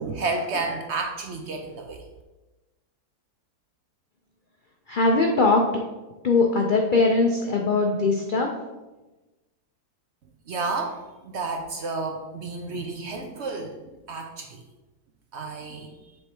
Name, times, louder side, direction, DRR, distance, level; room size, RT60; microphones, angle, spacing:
voice 1, 0.0-2.0 10.5-13.8 14.1-14.6 15.3-15.9, right 3 dB, 60° right, 3 dB, 0.7 m, -31 dB
voice 2, 4.9-5.7 6.2-8.5, left 3 dB, 85° left, 1 dB, 0.4 m, -21 dB
7.4 x 3.4 x 4.4 m, 1.1 s
omnidirectional pair, 1.7 m